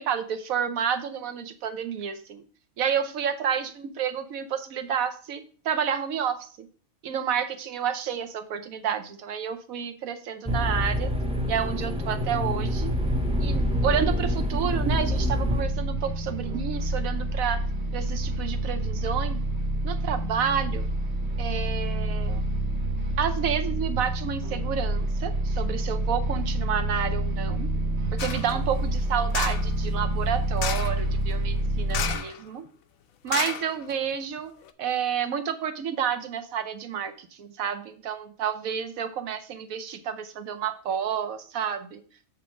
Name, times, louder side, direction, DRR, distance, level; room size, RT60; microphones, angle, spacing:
voice 1, 0.0-2.4 2.8-6.7 7.0-11.1 11.5-12.9 13.4-17.6 17.9-19.4 19.8-20.8 21.4-22.4 23.2-27.7 28.1-32.7 33.2-34.5 34.8-42.0, right 8 dB, 80° right, 8 dB, 1.2 m, -30 dB
sound 1, 10.5-15.6, left 1 dB, 5° right, 0.5 m, -27 dB
sound 2, 12.6-32.2, right 1 dB, 60° right, 1.1 m, -28 dB
sound 3, 28.2-28.5 29.3-29.7 30.6-31.0 31.9-32.4 32.7-32.8 33.3-34.1 34.6-34.7, left 8 dB, 90° left, 1.1 m, -31 dB
7.2 x 3.7 x 6.2 m, 0.43 s
omnidirectional pair, 1.4 m